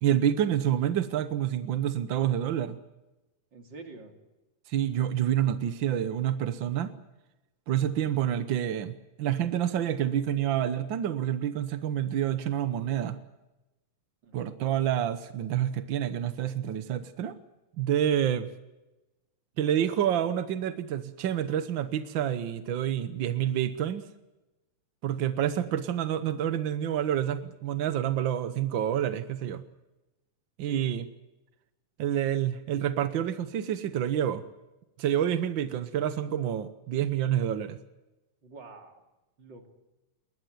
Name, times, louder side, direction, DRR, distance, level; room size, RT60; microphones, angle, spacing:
voice 1, 0.0-2.8 4.7-6.9 7.7-13.2 14.3-17.3 17.8-18.5 19.6-24.0 25.0-29.6 30.6-31.1 32.0-34.4 35.0-37.8, right 10 dB, 65° right, 11 dB, 1.1 m, -28 dB
voice 2, 3.5-4.2 14.2-14.6 30.6-30.8 38.4-39.0 39.4-39.7, right 3 dB, 40° right, 5 dB, 3.3 m, -47 dB
21.0 x 20.0 x 9.3 m, 1.0 s
omnidirectional pair, 3.4 m